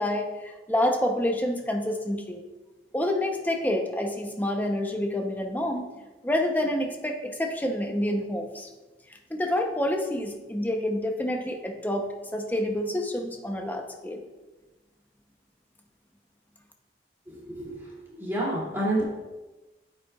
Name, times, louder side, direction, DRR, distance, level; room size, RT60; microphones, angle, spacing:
voice 1, 0.0-2.4 2.9-5.9 6.2-8.7 9.3-14.2, left 1 dB, 10° left, 3 dB, 0.7 m, -28 dB
voice 2, 17.3-19.0, right 1 dB, 15° right, -6 dB, 2.6 m, -29 dB
9.0 x 8.6 x 2.4 m, 1.1 s
head